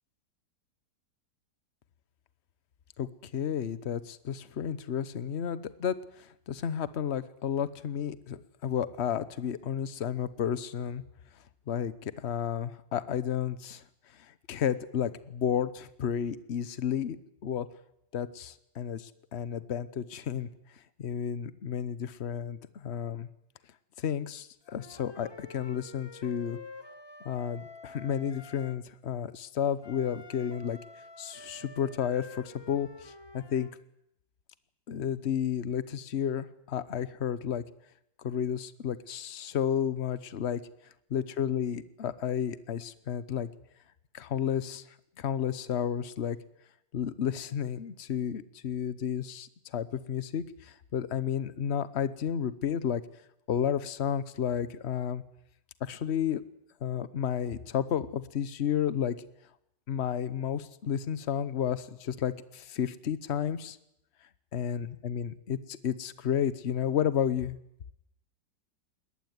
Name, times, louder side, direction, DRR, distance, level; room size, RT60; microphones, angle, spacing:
voice 1, 3.0-11.0 11.7-13.8 14.5-17.2 17.4-17.7 18.1-20.5 21.0-23.3 24.0-26.6 27.2-30.8 31.2-33.7 34.9-37.6 38.2-40.6 41.1-43.5 44.1-44.8 45.2-46.4 46.9-53.0 53.5-55.2 55.8-56.4 56.8-59.2 59.9-63.8 64.5-67.6, left 8 dB, 45° left, 15 dB, 1.1 m, -32 dB
Wind instrument woodwind instrument, 24.6-28.8 29.8-33.7, left 3 dB, 20° left, 0.9 m, -49 dB
21.5 x 19.0 x 9.5 m, 0.79 s
omnidirectional pair, 2.0 m